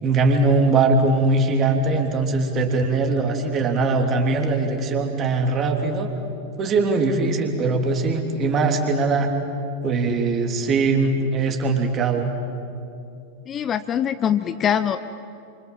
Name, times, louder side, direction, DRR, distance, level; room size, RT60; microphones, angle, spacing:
voice 1, 0.0-6.1 6.6-9.3 9.8-12.3, right 3 dB, 30° right, 4 dB, 3.3 m, -21 dB
voice 2, 13.5-15.0, left 9 dB, 25° left, 12 dB, 0.7 m, -23 dB
29.0 x 26.0 x 7.7 m, 2.6 s
figure-of-eight pair, 90°, 0 cm